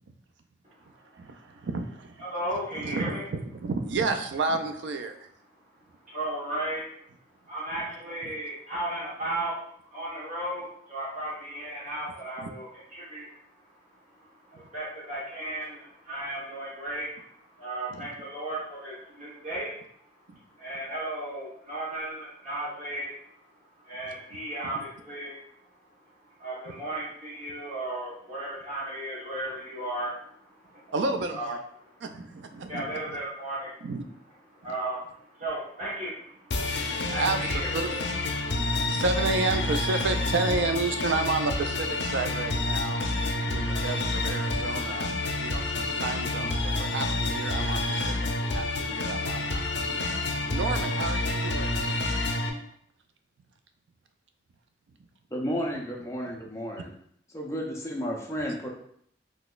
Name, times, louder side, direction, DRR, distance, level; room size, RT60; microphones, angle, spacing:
voice 1, 1.1-2.2 2.7-5.2 8.2-8.3 12.4-12.5 17.9-18.1 24.6-24.7 26.7-26.8 30.9-31.6 32.0-33.2 33.8-34.0 37.0-38.0 38.6-43.0 43.4-49.6 50.5-51.8, right 3 dB, 80° right, 7 dB, 0.4 m, -31 dB
voice 2, 2.2-3.2 6.1-6.8 7.5-9.5 9.9-12.7 12.9-13.3 14.5-17.1 17.5-19.7 20.6-23.1 23.8-25.4 26.4-30.2 30.6-30.9 31.3-31.5 32.7-33.8 34.6-35.1 35.3-36.5 36.8-37.7 38.6-38.8, right 1 dB, 40° right, -8 dB, 1.1 m, -35 dB
sound 1, 36.5-52.5, left 2 dB, 75° left, 0.5 m, -29 dB
voice 3, 55.3-56.9 57.3-58.7, equal, 15° left, -1 dB, 0.6 m, -32 dB
3.8 x 2.9 x 2.4 m, 0.66 s
head